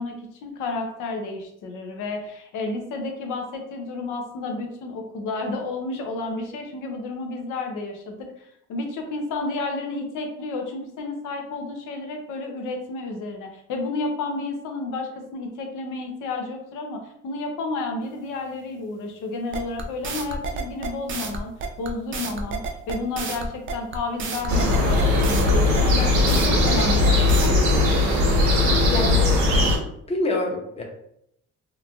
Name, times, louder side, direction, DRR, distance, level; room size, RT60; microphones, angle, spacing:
voice 1, 0.0-22.6 22.9-27.7, left 3 dB, 90° left, 3 dB, 0.6 m, -31 dB
sound 1, 19.5-27.5, right 4 dB, 40° right, 0.5 m, -30 dB
sound 2, 24.5-29.7, left 2 dB, 65° right, 1.0 m, -19 dB
voice 2, 28.9-29.4 30.1-30.8, left 2 dB, 20° left, 1 dB, 0.6 m, -26 dB
2.9 x 2.5 x 2.3 m, 0.75 s
cardioid pair, 90°, 30 cm